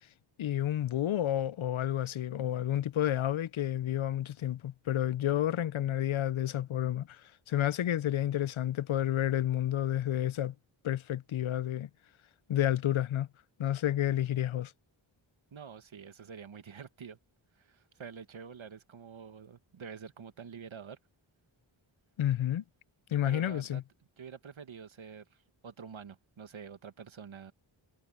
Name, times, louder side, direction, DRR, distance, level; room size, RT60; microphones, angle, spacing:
voice 1, 0.4-7.2 7.5-10.5 10.8-11.9 12.5-13.3 13.6-14.7 22.2-22.6 23.1-23.8, left 12 dB, 75° left, 0.6 m, -30 dB
voice 2, 15.5-17.2 17.5-21.0 23.2-23.8 24.2-27.5, right 6 dB, 70° right, 1.5 m, -47 dB
wide cardioid pair, 70°, 48 cm